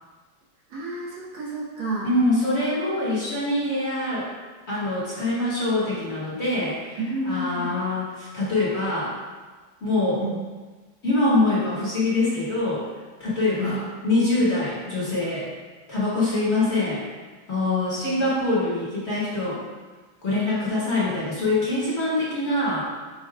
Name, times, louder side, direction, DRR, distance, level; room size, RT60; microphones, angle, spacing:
voice 1, 0.7-2.1 7.0-7.7 10.2-10.4 13.6-13.7, right 1 dB, 85° right, -6 dB, 1.8 m, -30 dB
voice 2, 2.0-4.3 4.7-9.1 9.8-10.2 11.0-12.8 13.2-15.5 15.9-17.0 17.5-19.6 20.2-22.9, left 2 dB, 40° left, -9 dB, 1.5 m, -24 dB
8.0 x 2.8 x 2.3 m, 1.4 s
omnidirectional pair, 2.0 m